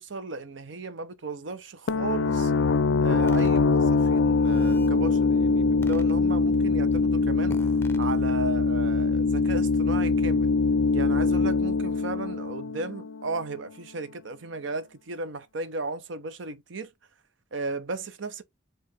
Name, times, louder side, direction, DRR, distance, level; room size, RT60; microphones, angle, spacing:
voice 1, 0.0-2.5 3.0-7.6 8.0-10.5 10.9-16.9 17.5-18.4, right 3 dB, 75° right, 0.7 m, -35 dB
sound 1, 1.9-13.4, left 4 dB, 75° left, 0.4 m, -23 dB
sound 2, 3.3-3.6 4.3-4.9 5.8-6.5 6.9-7.1 7.5-8.0, left 2 dB, 10° left, 0.6 m, -44 dB
sound 3, 4.5-11.0, right 1 dB, 20° right, 0.8 m, -43 dB
4.7 x 2.4 x 4.2 m
head